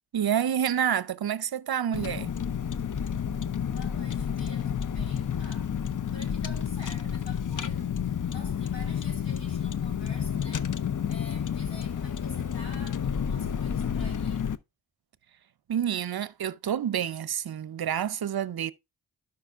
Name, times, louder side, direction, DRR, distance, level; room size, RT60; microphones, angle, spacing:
voice 1, 0.1-2.3 15.7-18.7, right 9 dB, 55° right, 0.7 m, -28 dB
Car, 1.9-14.6, left 8 dB, 40° left, 0.7 m, -30 dB
voice 2, 3.2-5.7 6.1-14.6, left 1 dB, 60° left, 4.5 m, -49 dB
12.0 x 5.5 x 2.5 m
cardioid pair, 45°, 46 cm